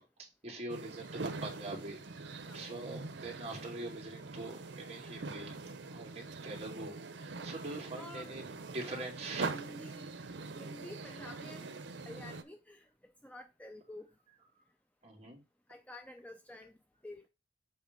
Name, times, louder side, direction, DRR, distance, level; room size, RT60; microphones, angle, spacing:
voice 1, 0.4-2.0 2.5-5.6 5.9-8.5 8.7-9.5 15.0-15.4, right 2 dB, 35° right, 2.5 m, -43 dB
sound 1, 0.7-12.4, right 3 dB, 80° right, 0.8 m, -43 dB
voice 2, 7.9-8.3 8.9-9.1 9.5-10.1 10.6-11.8 12.0-14.1 15.7-16.7 17.0-17.3, left 1 dB, 10° left, 0.4 m, -50 dB
7.8 x 3.3 x 5.1 m
head